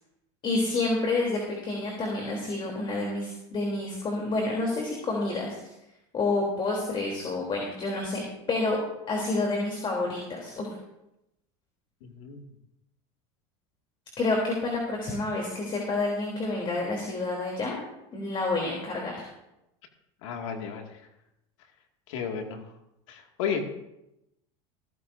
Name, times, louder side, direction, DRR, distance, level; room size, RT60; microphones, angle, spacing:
voice 1, 0.4-5.6 6.1-8.2 8.5-8.8 9.1-10.7 14.2-17.8 18.1-19.2, left 2 dB, 35° left, -1 dB, 3.4 m, -29 dB
voice 2, 12.0-12.4 20.2-20.9 22.1-22.6 23.1-23.7, left 6 dB, 80° left, 3 dB, 2.3 m, -33 dB
16.0 x 15.0 x 2.7 m, 0.88 s
supercardioid pair, 110°, 16 cm